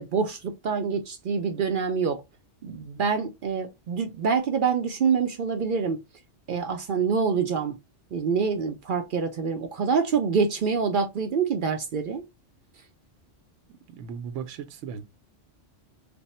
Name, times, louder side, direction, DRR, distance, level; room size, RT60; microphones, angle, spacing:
voice 1, 0.0-2.2 2.6-6.0 6.5-7.8 8.1-12.2, right 5 dB, 60° right, 0.5 m, -26 dB
voice 2, 13.9-15.0, right 7 dB, 80° right, 0.9 m, -36 dB
3.4 x 2.0 x 4.1 m
omnidirectional pair, 1.3 m